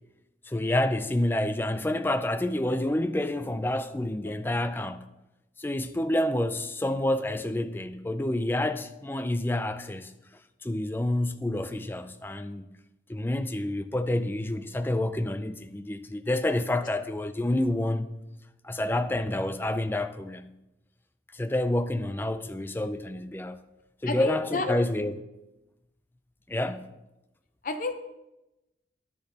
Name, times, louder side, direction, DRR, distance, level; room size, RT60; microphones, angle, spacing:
voice 1, 0.5-5.1 5.6-10.1 10.6-12.7 13.1-18.2 18.6-20.5 21.3-23.6 24.0-25.1 26.5-26.9, left 1 dB, 10° left, 0.3 m, -28 dB
voice 2, 24.1-24.8 27.6-28.0, left 3 dB, 45° left, 0.7 m, -31 dB
10.0 x 10.0 x 2.8 m
head